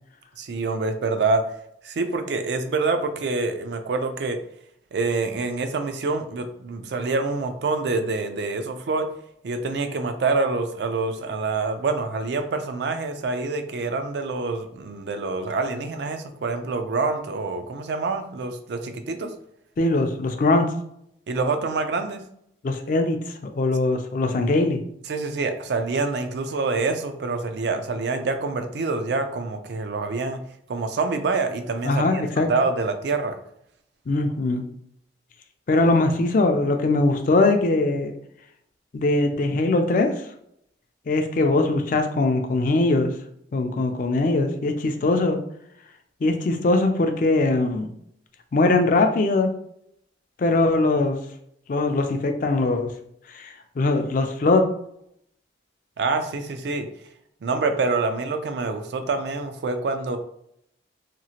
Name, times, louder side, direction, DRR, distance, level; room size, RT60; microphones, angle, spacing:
voice 1, 0.4-1.4 1.8-4.4 4.9-9.1 9.4-19.3 21.3-22.2 25.1-30.4 30.7-32.2 32.5-33.3 56.0-56.9 57.4-60.2, right 3 dB, 65° right, 7 dB, 0.4 m, -26 dB
voice 2, 19.8-20.7 22.6-24.8 31.8-32.5 34.1-34.6 35.7-38.1 38.9-40.1 41.1-43.1 43.5-45.4 46.2-47.9 48.5-49.5 50.4-51.2 51.7-52.9 53.3-54.6, left 2 dB, 45° left, 6 dB, 0.3 m, -21 dB
2.9 x 2.4 x 2.8 m, 0.73 s
head